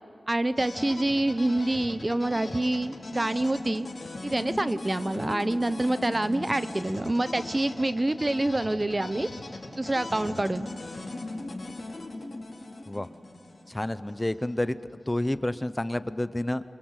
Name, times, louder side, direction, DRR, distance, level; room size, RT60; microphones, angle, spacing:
voice 1, 0.3-3.9 4.2-9.3 9.8-10.7, right 1 dB, 25° right, 13 dB, 0.7 m, -27 dB
sound 1, 0.6-14.5, left 2 dB, 45° left, 4.5 m, -39 dB
voice 2, 13.7-16.6, left 1 dB, 15° left, 13 dB, 0.7 m, -30 dB
27.5 x 24.5 x 8.1 m, 2.5 s
wide cardioid pair, 90°, 0 cm